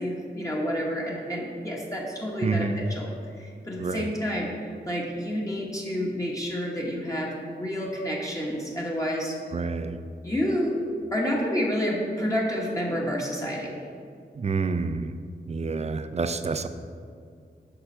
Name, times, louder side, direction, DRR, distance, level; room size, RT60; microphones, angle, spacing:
voice 1, 0.0-3.1 3.4-9.4 10.2-10.8 11.1-13.8, equal, 20° left, -3 dB, 1.1 m, -29 dB
voice 2, 2.4-2.8 3.8-4.1 9.5-10.0 14.4-15.1 15.5-16.7, right 4 dB, 35° right, 9 dB, 0.4 m, -28 dB
6.8 x 5.7 x 5.5 m, 2.3 s
wide cardioid pair, 115°, 18 cm